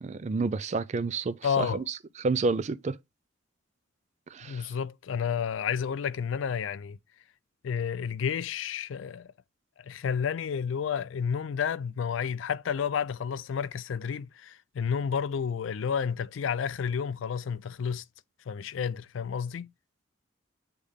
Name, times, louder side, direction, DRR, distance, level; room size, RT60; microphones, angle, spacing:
voice 1, 0.0-1.8 2.2-3.0 4.3-4.7, right 3 dB, 35° right, 0.4 m, -29 dB
voice 2, 1.4-1.8 4.4-7.0 7.6-9.3 9.8-18.0 18.5-19.7, left 7 dB, 75° left, 0.4 m, -31 dB
8.2 x 3.3 x 3.5 m
head